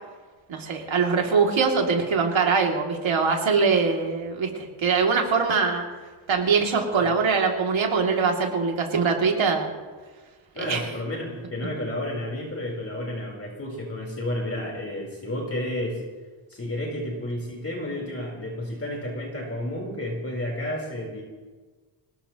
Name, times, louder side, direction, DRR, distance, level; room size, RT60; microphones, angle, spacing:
voice 1, 0.5-5.8 6.3-9.7 10.6-10.9, right 5 dB, 65° right, 1 dB, 2.8 m, -23 dB
voice 2, 10.5-16.0 16.5-21.2, left 1 dB, 30° left, -2 dB, 4.2 m, -31 dB
24.0 x 19.5 x 3.1 m, 1.4 s
wide cardioid pair, 120°, 49 cm